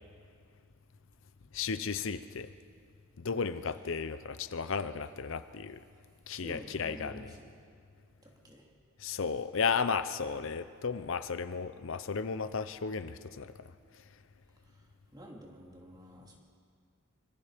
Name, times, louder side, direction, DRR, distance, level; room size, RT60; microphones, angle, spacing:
voice 1, 1.5-2.5 3.2-5.8 6.3-7.3 9.0-13.5, left 5 dB, 65° left, 12 dB, 0.6 m, -34 dB
voice 2, 6.3-7.5 8.2-8.7 15.1-16.4, equal, 20° right, -1 dB, 3.1 m, -49 dB
25.0 x 24.0 x 5.1 m, 2.2 s
head